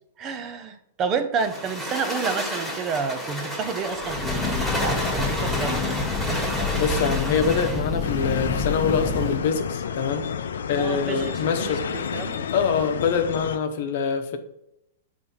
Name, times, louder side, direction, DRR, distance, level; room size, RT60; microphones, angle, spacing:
voice 1, 0.2-6.0 10.7-12.4, right 5 dB, 30° right, 8 dB, 0.7 m, -30 dB
sound 1, 1.4-7.9, equal, 5° right, 1.7 m, -30 dB
Breathing / Train, 4.0-9.5, left 4 dB, 25° left, 0.7 m, -28 dB
voice 2, 6.7-10.3 10.7-11.8 12.5-14.4, left 6 dB, 60° left, 6 dB, 0.9 m, -24 dB
sound 2, 8.0-13.6, left 7 dB, 80° left, 0.5 m, -30 dB
6.9 x 3.3 x 5.5 m, 0.80 s
hypercardioid pair, 125°, 0 cm